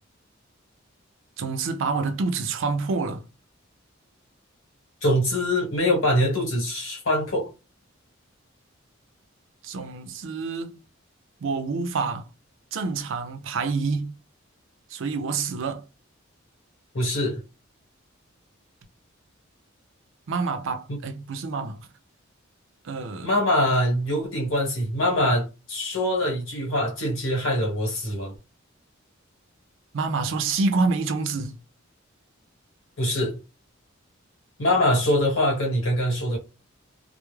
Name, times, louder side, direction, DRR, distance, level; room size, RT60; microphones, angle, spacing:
voice 1, 1.4-3.3 9.6-10.8 11.4-12.3 12.7-14.2 14.9-15.9 20.3-21.9 22.8-23.3 29.9-31.6, right 4 dB, 65° right, 0.4 m, -27 dB
voice 2, 5.0-7.5 16.9-17.4 20.9-21.0 23.2-28.3 33.0-33.3 34.6-36.4, left 1 dB, 70° left, 1.2 m, -23 dB
2.2 x 2.0 x 3.1 m
head